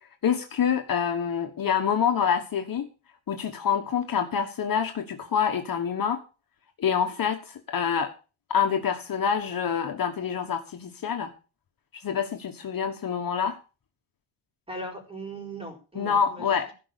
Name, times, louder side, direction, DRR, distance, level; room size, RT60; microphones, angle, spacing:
voice 1, 0.2-2.9 3.3-6.2 6.8-8.1 8.5-11.3 12.0-13.6 16.0-16.7, left 7 dB, 45° left, 5 dB, 1.4 m, -26 dB
voice 2, 14.7-16.5, right 1 dB, 10° right, 2 dB, 4.3 m, -38 dB
16.0 x 5.4 x 8.2 m, 0.34 s
wide cardioid pair, 160°, 49 cm